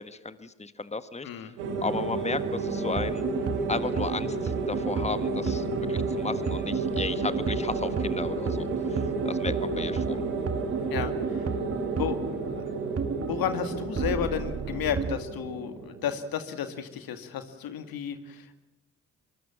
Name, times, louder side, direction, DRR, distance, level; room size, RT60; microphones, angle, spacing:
voice 1, 0.0-1.5 1.8-3.2 3.7-10.2, left 3 dB, 15° left, 13 dB, 1.5 m, -34 dB
voice 2, 1.2-1.5 10.9-11.5 12.0-12.8 13.3-18.6, left 8 dB, 65° left, 10 dB, 2.2 m, -33 dB
sound 1, 1.6-16.1, right 3 dB, 85° right, 3.7 m, -32 dB
sound 2, 2.9-15.2, right 5 dB, 40° right, 1.9 m, -33 dB
24.0 x 24.0 x 7.4 m, 0.95 s
hypercardioid pair, 40°, 38 cm